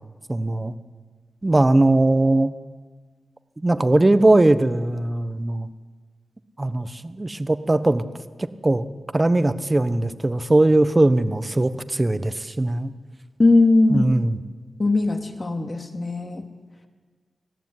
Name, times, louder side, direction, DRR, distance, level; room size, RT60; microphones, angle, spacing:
voice 1, 0.3-0.7 1.4-2.5 3.6-5.7 6.6-8.0 8.4-8.8 9.1-12.9 13.9-14.4, right 2 dB, 25° right, 12 dB, 1.2 m, -20 dB
voice 2, 13.4-14.1 14.8-16.5, left 2 dB, 40° left, 4 dB, 2.6 m, -19 dB
20.0 x 14.0 x 9.7 m, 1.5 s
cardioid pair, 50°, 0 cm